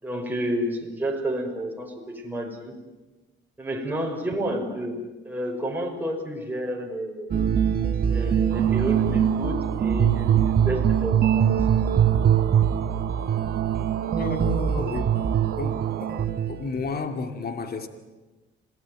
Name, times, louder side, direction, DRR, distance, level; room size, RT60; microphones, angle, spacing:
voice 1, 0.0-2.7 3.6-5.0 5.2-7.4 8.1-11.6, right 1 dB, 10° right, 0 dB, 5.7 m, -30 dB
sound 1, 7.3-16.9, right 8 dB, 50° right, 1.7 m, -22 dB
sound 2, 8.5-16.3, right 13 dB, 85° right, 1.1 m, -38 dB
voice 2, 14.2-15.1 15.6-16.2 16.5-17.9, left 4 dB, 50° left, 7 dB, 2.5 m, -32 dB
27.0 x 18.0 x 9.4 m, 1.2 s
cardioid pair, 90°, 20 cm